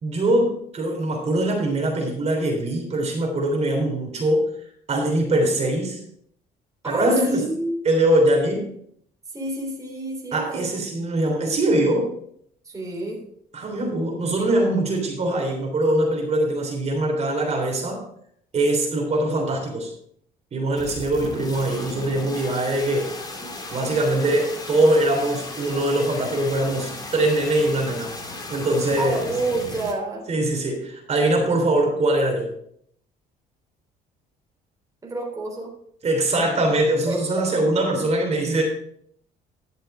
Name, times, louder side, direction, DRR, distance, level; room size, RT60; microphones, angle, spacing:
voice 1, 0.0-6.0 6.8-7.4 7.8-8.7 10.3-12.1 13.5-18.0 18.5-19.9 20.5-23.1 23.7-29.3 30.3-32.5 36.0-38.6, right 1 dB, 40° right, 1 dB, 3.3 m, -22 dB
voice 2, 6.8-8.1 9.3-10.8 12.6-13.2 29.0-30.2 35.0-35.7 37.1-37.2, right 2 dB, 20° right, -2 dB, 3.3 m, -29 dB
sound 1, 20.8-29.9, left 2 dB, 25° left, 2.4 m, -36 dB
12.0 x 6.7 x 4.9 m, 0.67 s
cardioid pair, 110°, 17 cm